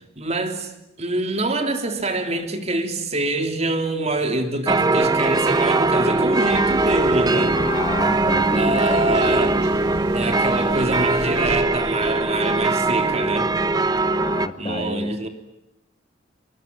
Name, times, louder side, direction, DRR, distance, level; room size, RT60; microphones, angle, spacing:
voice 1, 0.2-0.7 1.0-7.6 8.5-9.6 10.1-13.5 14.6-15.3, right 2 dB, 40° right, 6 dB, 3.4 m, -25 dB
sound 1, 4.7-14.5, right 2 dB, 20° right, 0.9 m, -21 dB
Thunder, 6.5-11.6, right 1 dB, 65° right, 4.5 m, -35 dB
voice 2, 7.6-9.3 14.0-15.1, left 2 dB, 30° left, 9 dB, 1.6 m, -31 dB
25.0 x 22.0 x 9.6 m, 0.84 s
head